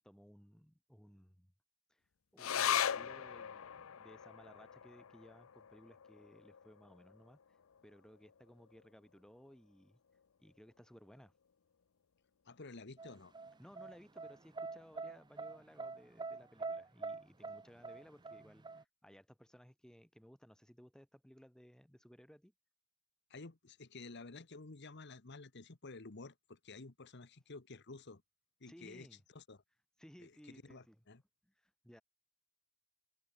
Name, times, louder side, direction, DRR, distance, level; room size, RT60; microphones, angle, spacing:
voice 1, 0.0-1.5 1.9-2.0 2.3-7.4 7.8-10.0 10.4-11.3 13.6-22.5 28.7-29.2 30.0-31.0 31.4-32.0, equal, 5° left, 1.3 m, -60 dB
sound 1, 2.4-9.2 9.5-9.6 9.9-10.6 11.1-11.2, left 9 dB, 85° left, 0.6 m, -40 dB
voice 2, 12.4-13.3 23.3-28.2 28.6-29.1 29.3-29.6 30.2-31.2, left 3 dB, 55° left, 1.2 m, -52 dB
sound 2, 13.0-18.8, right 3 dB, 20° right, 0.7 m, -44 dB
head